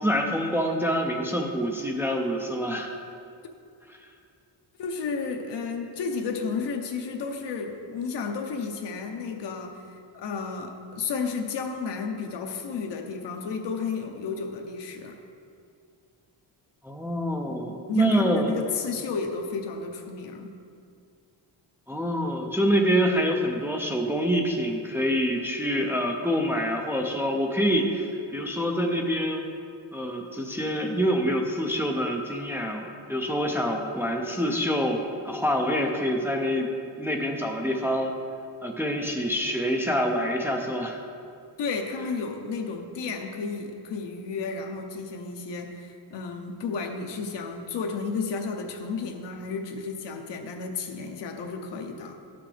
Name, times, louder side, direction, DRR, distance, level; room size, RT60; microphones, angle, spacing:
voice 1, 0.0-2.9 16.8-18.5 21.9-29.4 29.9-36.7 37.0-38.1 38.6-41.0, equal, 5° right, 1 dB, 0.4 m, -26 dB
voice 2, 4.8-15.2 17.9-20.5 41.6-52.2, left 5 dB, 75° left, 3 dB, 0.8 m, -32 dB
12.0 x 6.0 x 3.3 m, 2.3 s
wide cardioid pair, 160°, 43 cm